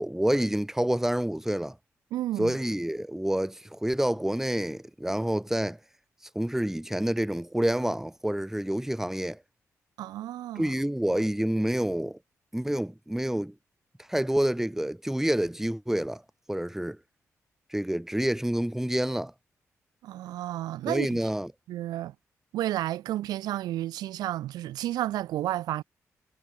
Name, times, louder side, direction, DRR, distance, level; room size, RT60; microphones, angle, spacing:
voice 1, 0.0-1.8 2.4-5.8 6.3-9.4 10.6-12.2 12.5-13.5 14.1-16.2 16.5-17.0 17.7-19.3 20.9-21.5, right 1 dB, 5° right, 1.0 m, -28 dB
voice 2, 2.1-2.5 10.0-10.7 20.0-21.2 21.7-22.1 22.5-25.8, right 14 dB, 80° right, 0.6 m, -31 dB
hypercardioid pair, 40°, 7 cm